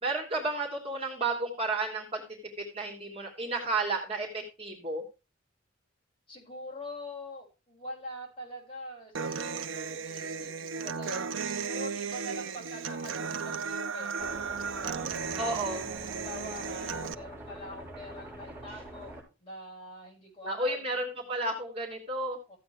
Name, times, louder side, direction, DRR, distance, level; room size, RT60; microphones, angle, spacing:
voice 1, 0.0-2.2 2.6-5.0 15.4-15.9 20.4-22.4, right 2 dB, 30° right, 0 dB, 2.9 m, -32 dB
voice 2, 6.3-14.4 16.0-21.0 22.5-22.6, left 1 dB, 30° left, -3 dB, 6.1 m, -44 dB
Human voice / Acoustic guitar, 9.1-17.1, right 5 dB, 80° right, 0.6 m, -35 dB
sound 1, 14.2-19.2, right 1 dB, 10° right, 6.1 m, -45 dB
14.5 x 8.7 x 3.3 m, 0.30 s
head